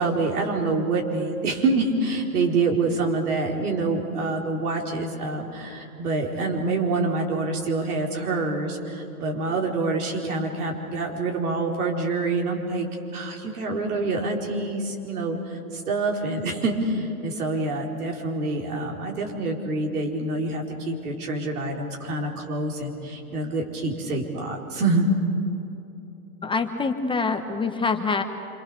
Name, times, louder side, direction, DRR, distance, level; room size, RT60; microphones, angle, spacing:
voice 1, 0.0-12.9 13.1-25.1, right 3 dB, 75° right, 0 dB, 4.8 m, -26 dB
voice 2, 26.4-28.2, left 4 dB, 10° left, 5 dB, 1.1 m, -25 dB
27.5 x 25.0 x 6.9 m, 2.9 s
hypercardioid pair, 120°, 45 cm